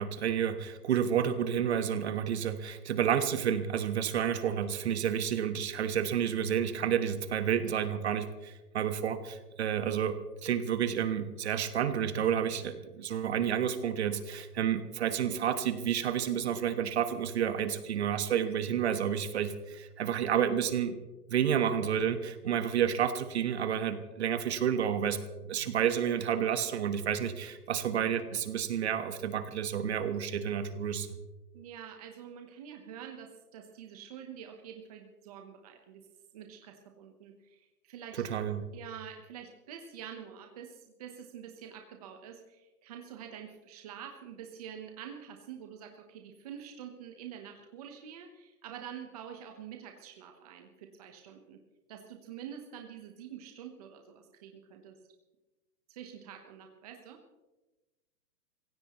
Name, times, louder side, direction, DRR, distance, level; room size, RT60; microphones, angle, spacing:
voice 1, 0.0-10.2 10.4-20.9 21.3-25.2 25.4-31.1 38.2-38.6, right 8 dB, 45° right, 10 dB, 1.3 m, -30 dB
voice 2, 31.5-36.0 36.3-38.2 38.7-51.6 51.9-55.0 55.9-57.2, right 8 dB, 25° right, 3 dB, 1.0 m, -47 dB
25.5 x 16.0 x 3.0 m, 1.1 s
hypercardioid pair, 175°, 46 cm